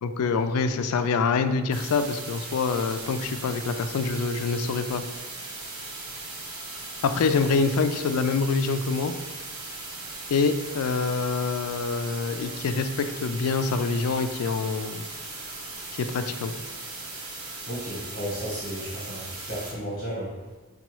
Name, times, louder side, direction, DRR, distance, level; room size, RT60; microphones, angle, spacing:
voice 1, 0.0-5.0 7.0-9.1 10.3-15.0 15.9-16.5, left 4 dB, 85° left, 9 dB, 0.3 m, -26 dB
sound 1, 1.7-19.7, right 3 dB, 80° right, 0.9 m, -38 dB
voice 2, 17.7-20.3, equal, 40° left, -6 dB, 1.0 m, -33 dB
5.4 x 2.3 x 3.0 m, 1.3 s
head